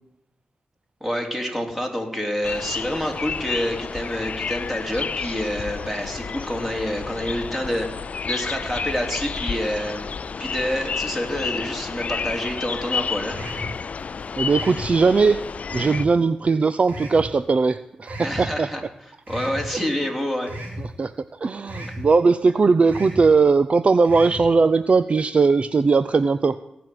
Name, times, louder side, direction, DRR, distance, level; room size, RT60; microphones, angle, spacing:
voice 1, 1.0-10.1 10.4-13.4 18.2-18.8 19.3-20.5, equal, 10° right, 2 dB, 3.5 m, -27 dB
sound 1, 2.4-16.1, left 5 dB, 55° left, 0.4 m, -31 dB
sound 2, 13.3-13.7 14.5-14.9 15.7-16.1 16.9-17.3 18.0-18.4 19.3-19.6 20.5-20.8 21.7-22.0 22.9-23.2 24.0-24.4, equal, 70° right, 4.3 m, -35 dB
voice 2, 14.4-15.4 15.7-18.7 19.7-19.8 20.8-26.6, right 4 dB, 45° right, 13 dB, 0.5 m, -19 dB
17.0 x 6.1 x 9.3 m, 0.86 s
cardioid pair, 60°, 3 cm